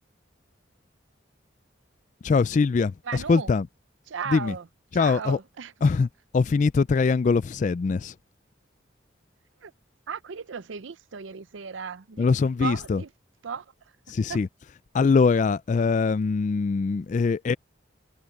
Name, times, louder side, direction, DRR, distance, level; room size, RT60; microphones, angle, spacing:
voice 1, 2.2-3.7 4.3-4.5 4.9-5.4 5.8-6.1 6.3-8.2 12.2-13.0 14.1-14.5 14.9-17.6, left 4 dB, 40° left, 0.3 m, -22 dB
voice 2, 3.0-3.5 4.1-4.7 4.9-5.7 9.6-9.7 10.1-12.3 12.6-13.1 13.4-14.4, right 6 dB, 80° right, 0.6 m, -36 dB
head